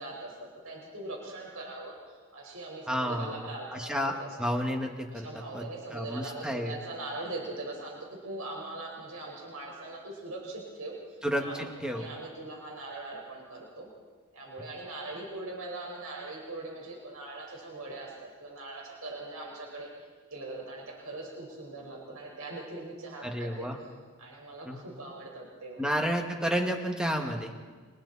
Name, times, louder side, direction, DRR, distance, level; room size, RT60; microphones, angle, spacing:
voice 1, 0.0-3.9 4.2-4.3 5.1-11.0 11.4-13.9 14.3-19.9 20.3-23.9 24.2-25.8, right 2 dB, 75° right, -1 dB, 5.0 m, -41 dB
voice 2, 2.9-5.7 5.9-6.7 11.2-12.1 23.2-23.8 24.7-24.8 25.8-27.5, equal, 5° right, 2 dB, 2.1 m, -31 dB
30.0 x 25.5 x 4.3 m, 1.5 s
head